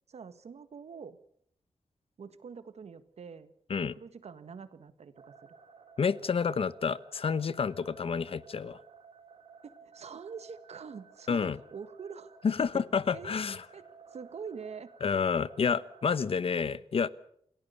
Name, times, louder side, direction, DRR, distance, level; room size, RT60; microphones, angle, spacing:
voice 1, 0.1-1.2 2.2-3.5 3.8-5.6 9.6-13.4 13.7-13.9 14.1-14.9, right 6 dB, 85° right, 12 dB, 1.8 m, -45 dB
sound 1, 5.1-16.3, right 5 dB, 60° right, 4.9 m, -55 dB
voice 2, 6.0-8.8 11.3-11.6 12.4-13.6 15.0-17.1, left 6 dB, 65° left, 17 dB, 1.0 m, -29 dB
28.5 x 17.0 x 7.0 m, 0.69 s
wide cardioid pair, 140°, 11 cm